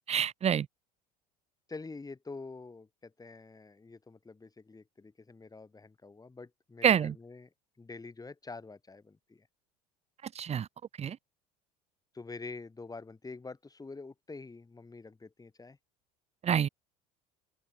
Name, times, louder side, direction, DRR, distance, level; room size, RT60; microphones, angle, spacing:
voice 1, 0.1-0.7 6.8-7.1 10.3-10.7 11.0-11.2 16.4-16.7, right 8 dB, 30° right, 0.9 m, -27 dB
voice 2, 1.7-7.5 7.8-9.5 12.1-15.8, left 3 dB, 15° left, 7.5 m, -46 dB
open air
hypercardioid pair, 70°, 21 cm